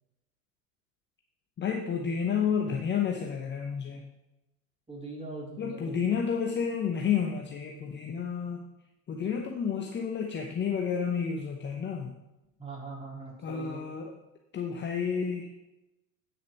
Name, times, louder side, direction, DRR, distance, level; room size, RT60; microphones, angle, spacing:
voice 1, 1.6-4.0 5.6-8.7 9.1-12.1 13.4-14.1 14.5-15.5, left 7 dB, 25° left, 3 dB, 1.0 m, -30 dB
voice 2, 4.9-6.0 12.6-13.8, right 3 dB, 15° right, -4 dB, 4.0 m, -41 dB
9.1 x 6.6 x 5.8 m, 0.95 s
figure-of-eight pair, 80°, 47 cm